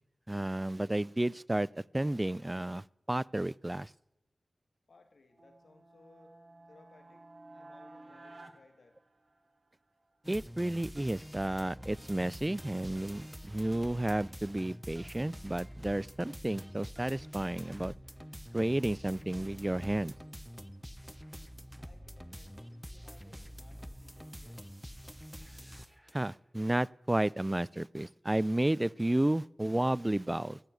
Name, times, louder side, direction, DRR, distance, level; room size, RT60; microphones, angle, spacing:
voice 1, 0.3-1.7 1.9-3.9 10.3-17.9 18.5-20.2 26.1-30.6, right 1 dB, 20° right, 0.4 m, -32 dB
voice 2, 4.9-6.4 6.7-7.2 7.5-9.0 21.8-24.6, left 3 dB, 80° left, 2.6 m, -62 dB
sound 1, 5.3-9.7, right 2 dB, 60° right, 1.6 m, -54 dB
sound 2, 10.2-26.4, equal, 5° right, 1.0 m, -47 dB
15.5 x 6.9 x 9.9 m
cardioid pair, 45°, 0 cm